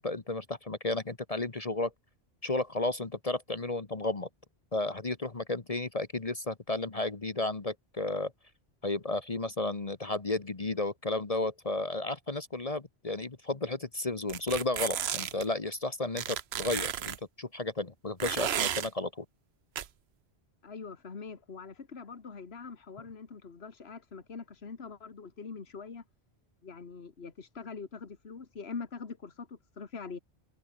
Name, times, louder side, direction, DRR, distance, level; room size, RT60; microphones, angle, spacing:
voice 1, 0.0-1.9 2.4-4.3 4.7-8.3 8.8-19.2, left 2 dB, 35° left, 1.3 m, -33 dB
sound 1, 14.3-15.4 16.2-17.2 18.2-18.9 19.8-19.9, right 9 dB, 75° right, 1.0 m, -33 dB
voice 2, 20.6-26.0 26.6-30.2, left 5 dB, 70° left, 2.0 m, -43 dB
omnidirectional pair, 1.1 m